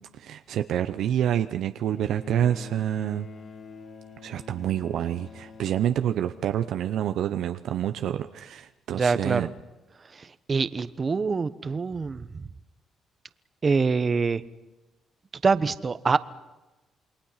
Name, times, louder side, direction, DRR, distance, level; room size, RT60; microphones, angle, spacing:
voice 1, 0.1-3.3 4.2-9.5, right 10 dB, 75° right, 9 dB, 0.7 m, -27 dB
Bowed string instrument, 1.9-7.4 8.5-8.6, left 5 dB, 55° left, 2.3 m, -47 dB
voice 2, 8.9-9.5 10.1-12.4 13.6-14.4 15.4-16.2, right 4 dB, 35° right, 14 dB, 1.1 m, -25 dB
28.5 x 22.0 x 5.8 m, 1.1 s
cardioid pair, 90°, 0 cm